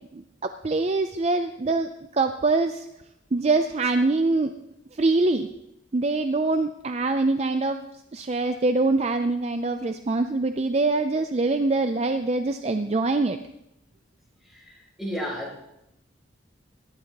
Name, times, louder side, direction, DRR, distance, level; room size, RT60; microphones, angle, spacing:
voice 1, 0.1-2.9 3.3-4.5 4.9-5.5 5.9-7.8 8.1-13.4, right 3 dB, 35° right, 8 dB, 0.5 m, -24 dB
voice 2, 15.0-15.6, equal, ahead, -4 dB, 3.9 m, -30 dB
22.0 x 11.5 x 3.0 m, 0.86 s
head